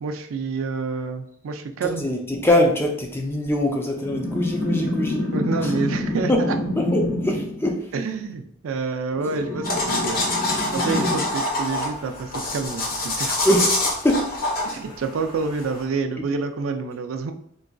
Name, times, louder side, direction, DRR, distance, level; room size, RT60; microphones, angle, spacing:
voice 1, 0.0-2.1 5.3-6.6 7.9-10.2 10.7-13.5 14.6-17.3, right 4 dB, 80° right, 6 dB, 0.4 m, -28 dB
voice 2, 2.0-5.2 5.6-5.7 6.3-6.4 6.8-7.8 13.5-14.3, left 1 dB, 10° left, 2 dB, 0.4 m, -22 dB
sound 1, 4.0-7.5 9.1-11.2, left 1 dB, 65° left, 0.9 m, -27 dB
sound 2, 9.6-15.8, left 2 dB, 45° left, 0.8 m, -26 dB
3.8 x 2.5 x 2.2 m, 0.69 s
head